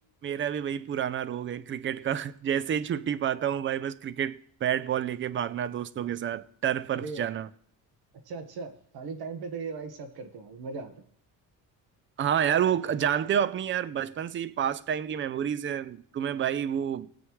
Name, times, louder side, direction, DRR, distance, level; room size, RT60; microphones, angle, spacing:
voice 1, 0.2-7.5 12.2-17.1, right 9 dB, 30° right, 0.4 m, -29 dB
voice 2, 6.9-7.3 8.3-10.9, right 4 dB, 70° right, 1.5 m, -38 dB
19.5 x 7.9 x 3.1 m
cardioid pair, 150°, 40 cm